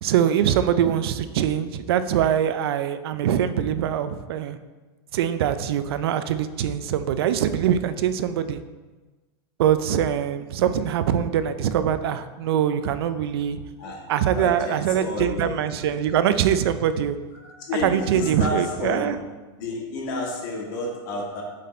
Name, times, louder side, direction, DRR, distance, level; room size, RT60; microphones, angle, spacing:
voice 1, 0.0-4.6 5.1-8.6 9.6-13.6 14.1-17.2 17.8-19.2, right 9 dB, 70° right, 11 dB, 0.5 m, -23 dB
voice 2, 14.4-15.6 15.9-16.0 17.3-19.2 19.6-21.4, left 2 dB, 50° left, -2 dB, 1.8 m, -31 dB
7.3 x 4.2 x 4.2 m, 1.3 s
supercardioid pair, 170°, 13 cm